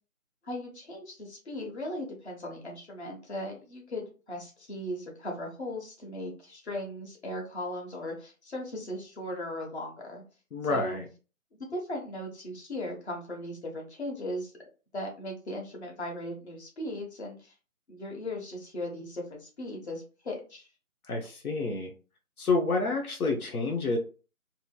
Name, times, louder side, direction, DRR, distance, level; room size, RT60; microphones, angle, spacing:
voice 1, 0.4-10.2 10.7-11.0 11.5-14.5 14.9-17.5 17.9-20.7, left 1 dB, 50° left, 0 dB, 1.2 m, -38 dB
voice 2, 10.5-11.0 21.1-21.9 22.4-24.0, left 3 dB, 85° left, 2 dB, 0.8 m, -28 dB
2.9 x 2.8 x 2.2 m, 0.35 s
figure-of-eight pair, 170°, 43 cm